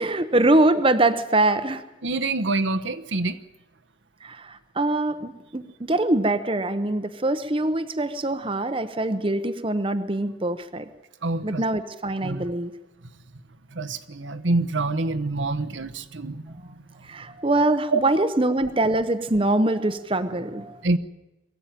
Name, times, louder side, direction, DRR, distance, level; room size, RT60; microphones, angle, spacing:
voice 1, 0.0-1.8 4.2-10.9 11.4-12.7 16.6-16.7 17.0-20.8, right 2 dB, 25° right, 9 dB, 0.9 m, -23 dB
voice 2, 2.0-3.4 11.2-11.6 12.2-12.5 13.7-16.6 17.9-18.0 20.8-21.0, right 3 dB, 75° right, 8 dB, 1.1 m, -26 dB
22.5 x 15.0 x 9.1 m, 1.0 s
head